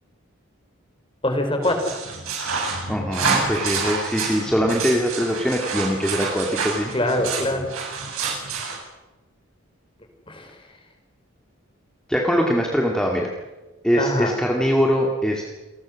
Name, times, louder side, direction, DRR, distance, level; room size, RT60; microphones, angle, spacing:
voice 1, 1.2-1.9 6.9-7.7 10.3-10.5 13.9-14.3, left 1 dB, 25° left, 5 dB, 4.3 m, -23 dB
sound 1, 1.6-8.8, right 4 dB, 85° right, 7.7 m, -28 dB
voice 2, 2.9-6.9 12.1-13.3 13.8-15.4, equal, 5° left, 0 dB, 2.3 m, -22 dB
28.0 x 20.0 x 6.5 m, 1.1 s
head